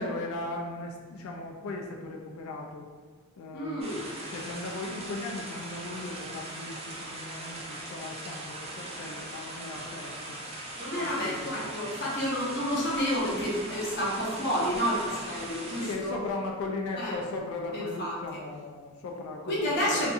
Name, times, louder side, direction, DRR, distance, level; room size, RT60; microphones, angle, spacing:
voice 1, 0.0-2.9 3.4-10.4 10.9-11.8 12.0-12.2 15.8-19.6 19.9-20.1, left 2 dB, 70° left, 2 dB, 0.3 m, -38 dB
voice 2, 3.5-4.0 10.8-16.2 17.0-17.1 17.7-18.1 19.5-20.1, equal, 50° left, -5 dB, 0.7 m, -30 dB
sound 1, 3.8-16.0, right 1 dB, 25° right, 0.4 m, -40 dB
2.6 x 2.5 x 2.3 m, 1.5 s
head